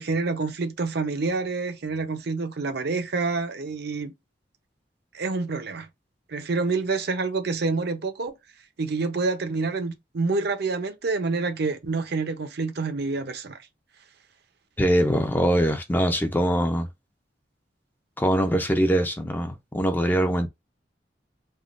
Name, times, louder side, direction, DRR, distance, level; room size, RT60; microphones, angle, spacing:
voice 1, 0.0-4.1 5.1-5.9 6.3-8.3 8.8-13.6, right 3 dB, 65° right, 0.6 m, -27 dB
voice 2, 14.8-16.9 18.2-20.5, equal, 10° left, 0.4 m, -23 dB
3.5 x 2.2 x 2.5 m
head